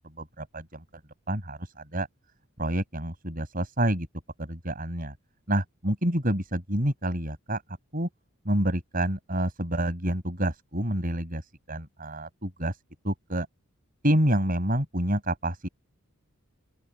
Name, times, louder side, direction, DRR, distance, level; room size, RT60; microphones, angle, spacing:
voice 1, 0.2-0.8 1.3-2.1 2.6-4.1 4.4-5.1 5.5-8.1 8.5-11.4 11.7-12.8 13.0-13.5 14.0-15.7, right 1 dB, 40° right, 7.2 m, -28 dB
open air
head